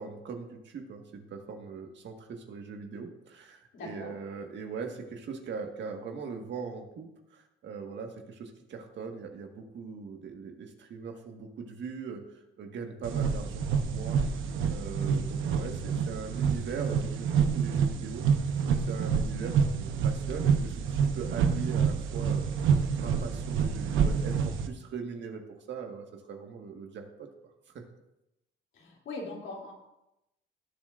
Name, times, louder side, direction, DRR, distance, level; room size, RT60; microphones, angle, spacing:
voice 1, 0.0-14.2 14.7-18.2 18.6-25.4 25.7-27.3 27.7-27.8, right 5 dB, 65° right, 3 dB, 1.7 m, -40 dB
voice 2, 3.7-4.1 28.7-29.7, left 3 dB, 70° left, -2 dB, 3.0 m, -41 dB
sound 1, 13.0-24.7, right 6 dB, 85° right, 0.9 m, -28 dB
18.5 x 7.5 x 2.6 m, 0.90 s
cardioid pair, 90°, 20 cm